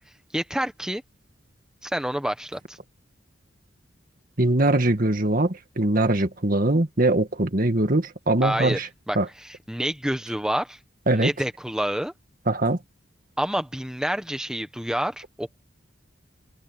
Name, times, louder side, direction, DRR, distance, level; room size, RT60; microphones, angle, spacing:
voice 1, 0.3-1.0 1.8-2.8 8.4-8.8 9.1-10.8 11.1-12.1 13.4-15.6, equal, 5° right, 1.0 m, -28 dB
voice 2, 4.4-8.9 9.2-9.3 11.1-11.3 12.5-12.8, right 2 dB, 45° right, 1.9 m, -22 dB
head